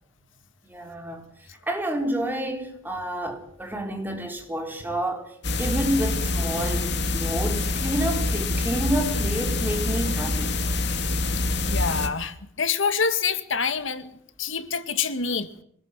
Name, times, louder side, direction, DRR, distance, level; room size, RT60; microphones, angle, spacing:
voice 1, 0.7-1.2 1.6-5.3 5.6-10.6, right 1 dB, 10° right, 4.5 m, -29 dB
sound 1, 5.4-12.1, left 2 dB, 60° left, 3.3 m, -26 dB
voice 2, 11.7-14.1 14.4-15.5, left 5 dB, 80° left, 2.2 m, -26 dB
26.0 x 20.0 x 9.2 m
head